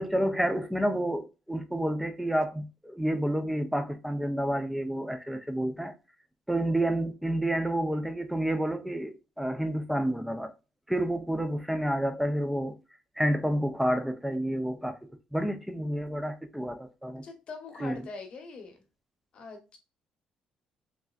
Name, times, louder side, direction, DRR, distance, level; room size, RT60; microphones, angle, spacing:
voice 1, 0.0-5.9 6.5-10.5 10.9-12.8 13.2-17.2 17.8-18.1, right 1 dB, 5° right, 0.4 m, -29 dB
voice 2, 17.2-18.8 19.3-19.8, left 4 dB, 45° left, 0.9 m, -43 dB
3.3 x 2.5 x 2.3 m
cardioid pair, 125°, 2 cm